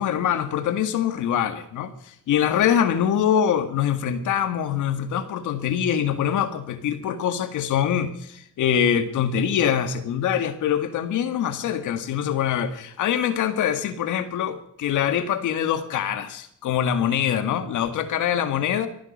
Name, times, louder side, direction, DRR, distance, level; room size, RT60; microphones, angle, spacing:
voice 1, 0.0-18.9, left 9 dB, 80° left, 10 dB, 1.9 m, -24 dB
24.5 x 9.7 x 5.5 m, 0.68 s
cardioid pair, 90°, 30 cm